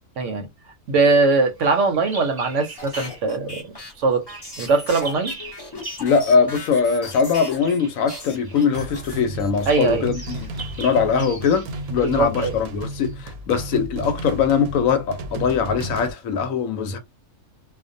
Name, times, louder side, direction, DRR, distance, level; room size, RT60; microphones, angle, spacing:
voice 1, 0.2-0.5 0.9-3.7 4.0-4.2 4.6-5.3 9.7-10.1 12.0-12.5, right 3 dB, 65° right, 0.8 m, -20 dB
Bird vocalization bird call bird song, 1.1-3.3 3.6-13.1, right 3 dB, 25° right, 0.5 m, -41 dB
sound 1, 2.8-7.8 8.1-9.7, left 2 dB, 30° left, 0.5 m, -38 dB
voice 2, 6.0-10.5 10.8-17.0, left 6 dB, 75° left, 1.0 m, -21 dB
sound 2, 8.7-16.1, right 1 dB, 90° right, 1.1 m, -33 dB
2.4 x 2.1 x 2.5 m
omnidirectional pair, 1.5 m